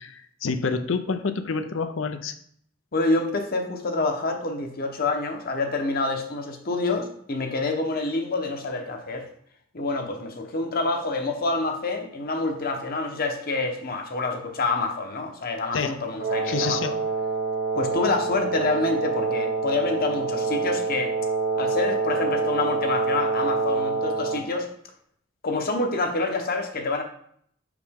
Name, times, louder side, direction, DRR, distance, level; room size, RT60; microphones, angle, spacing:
voice 1, 0.0-2.3 15.7-16.0 16.4-17.0, left 5 dB, 80° left, 9 dB, 0.6 m, -28 dB
voice 2, 2.9-9.2 9.7-16.9 17.7-21.1 21.5-24.7 25.4-27.0, left 3 dB, 50° left, 4 dB, 0.9 m, -27 dB
Wind instrument woodwind instrument, 16.2-24.5, right 4 dB, 80° right, 1.1 m, -26 dB
6.0 x 4.9 x 3.6 m, 0.65 s
head